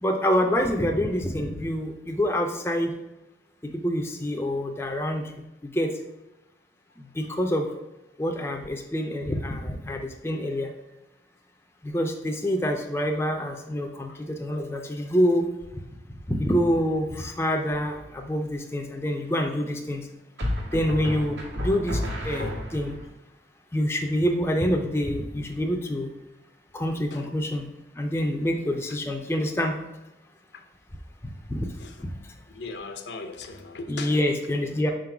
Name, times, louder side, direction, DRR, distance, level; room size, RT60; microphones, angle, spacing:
voice 1, 0.0-2.9 3.6-5.2 5.6-5.9 7.2-7.7 8.2-10.7 11.8-15.5 16.3-20.0 20.7-22.9 23.7-26.1 26.7-27.7 28.0-29.7 31.5-31.7 32.0-32.1 33.9-34.9, equal, 15° left, 2 dB, 0.5 m, -26 dB
voice 2, 6.9-7.3 14.1-14.2 27.1-27.3 28.9-29.0 30.5-30.7 31.8-32.1 32.5-34.2, left 3 dB, 75° left, 6 dB, 0.7 m, -39 dB
sound 1, 17.8-18.2 20.4-23.0, left 1 dB, 80° right, 1.9 m, -31 dB
5.0 x 3.8 x 5.8 m, 0.97 s
head